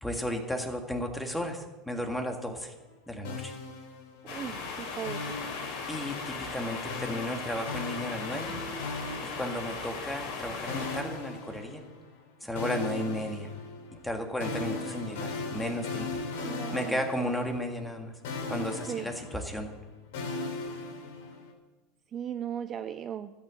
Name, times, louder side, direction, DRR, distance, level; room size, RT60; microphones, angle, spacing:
voice 1, 0.0-2.7 3.1-3.5 5.9-8.6 9.2-11.8 12.4-13.5 13.9-16.2 16.7-18.1 18.5-19.7, left 1 dB, 5° left, 4 dB, 1.8 m, -34 dB
Synth All is Good Jingle, 3.2-4.5 5.0-6.3 6.9-10.0 10.7-12.2 12.6-18.0 18.2-21.5, left 3 dB, 85° left, 3.6 m, -38 dB
sound 1, 4.3-11.0, left 4 dB, 65° left, 4.4 m, -38 dB
voice 2, 4.3-5.3 16.4-17.0 18.9-19.1 22.1-23.3, right 9 dB, 30° right, 10 dB, 0.5 m, -37 dB
13.5 x 8.8 x 7.7 m, 1.1 s
supercardioid pair, 140°, 0 cm